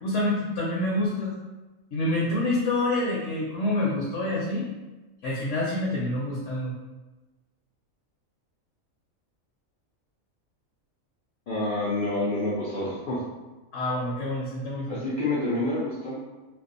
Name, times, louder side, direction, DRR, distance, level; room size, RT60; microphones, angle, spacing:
voice 1, 0.0-1.3 1.9-4.7 5.2-6.8 13.7-15.0, left 1 dB, 70° left, -5 dB, 0.8 m, -27 dB
voice 2, 11.5-13.2 14.9-16.1, left 2 dB, 90° left, -8 dB, 0.4 m, -28 dB
2.6 x 2.2 x 2.4 m, 1.1 s
omnidirectional pair, 1.4 m